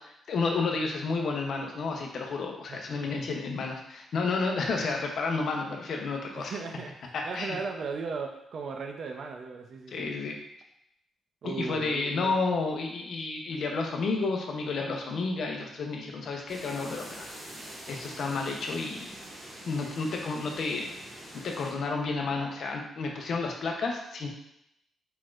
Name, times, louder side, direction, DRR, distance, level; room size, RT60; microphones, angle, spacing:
voice 1, 0.0-6.5 7.1-7.6 9.9-10.4 11.4-17.3 17.9-19.2 19.7-20.9 21.3-24.3, left 4 dB, 60° left, 1 dB, 0.8 m, -31 dB
voice 2, 2.7-3.2 6.3-10.1 11.4-12.4, right 4 dB, 60° right, 3 dB, 0.6 m, -37 dB
sound 1, 16.5-21.7, right 1 dB, 30° right, 1.6 m, -45 dB
4.5 x 4.1 x 2.5 m, 0.77 s
cardioid pair, 115°, 0 cm